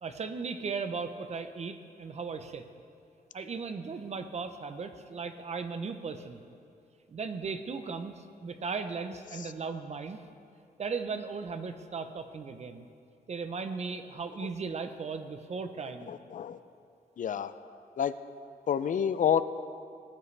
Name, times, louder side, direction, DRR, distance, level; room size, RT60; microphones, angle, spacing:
voice 1, 0.0-2.6 3.3-6.4 7.1-10.2 10.8-12.9 13.3-16.1, right 5 dB, 45° right, 8 dB, 0.7 m, -37 dB
voice 2, 16.1-16.6 17.2-17.5 18.0-18.1 18.7-19.4, left 8 dB, 55° left, 13 dB, 0.4 m, -28 dB
19.0 x 12.0 x 3.3 m, 2.5 s
wide cardioid pair, 145°, 16 cm